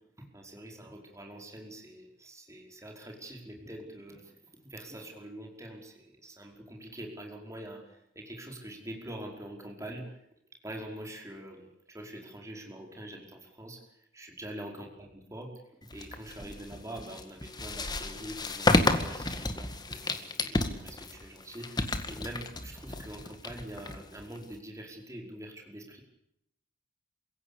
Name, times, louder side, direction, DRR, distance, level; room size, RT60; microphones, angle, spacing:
voice 1, 0.2-10.2 10.6-15.5 15.9-26.0, right 1 dB, 15° right, 2 dB, 5.1 m, -45 dB
sound 1, 15.9-24.6, left 2 dB, 20° left, 2.0 m, -31 dB
27.5 x 17.0 x 8.6 m, 0.78 s
head